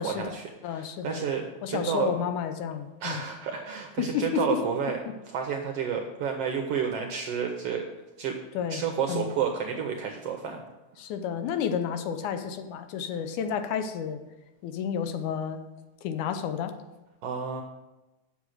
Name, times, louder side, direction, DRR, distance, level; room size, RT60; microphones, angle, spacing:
voice 1, 0.0-2.1 3.0-5.0 5.2-7.8 8.2-8.4 8.7-10.6 17.2-17.6, right 7 dB, 75° right, 4 dB, 1.4 m, -30 dB
voice 2, 0.6-1.3 1.6-3.2 4.0-4.6 8.5-8.8 9.1-9.3 11.0-14.2 14.6-15.6 16.0-16.7, left 8 dB, 80° left, 8 dB, 2.2 m, -31 dB
7.3 x 6.3 x 7.7 m, 1.0 s
omnidirectional pair, 3.5 m